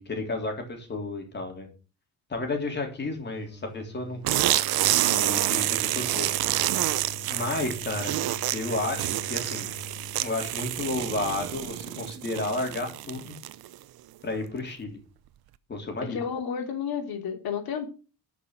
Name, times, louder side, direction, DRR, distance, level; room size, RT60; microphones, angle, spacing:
voice 1, 0.0-1.7 2.3-4.6 5.0-6.3 7.3-8.2 8.5-9.7 10.2-13.3 14.2-15.0 15.7-16.2, left 2 dB, 30° left, 3 dB, 3.3 m, -32 dB
sound 1, 2.6-10.3, left 2 dB, 10° right, 2.0 m, -45 dB
sound 2, 4.2-13.7, right 15 dB, 80° right, 0.8 m, -28 dB
voice 2, 16.1-17.9, left 7 dB, 75° left, 4 dB, 3.4 m, -31 dB
12.5 x 6.0 x 6.4 m, 0.35 s
cardioid pair, 160°, 37 cm